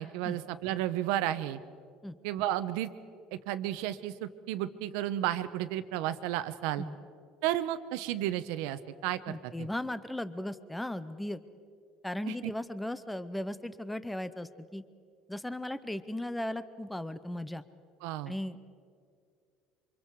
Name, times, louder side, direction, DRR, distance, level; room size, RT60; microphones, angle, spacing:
voice 1, 0.0-1.6 2.2-2.9 3.3-6.8 7.4-9.7 12.3-12.5 18.0-18.3, right 13 dB, 75° right, 12 dB, 1.0 m, -33 dB
voice 2, 9.3-11.4 12.0-14.8 15.3-17.6 18.3-18.6, left 1 dB, 5° left, 13 dB, 0.6 m, -37 dB
28.0 x 25.5 x 4.8 m, 2.3 s
cardioid pair, 170°, 0 cm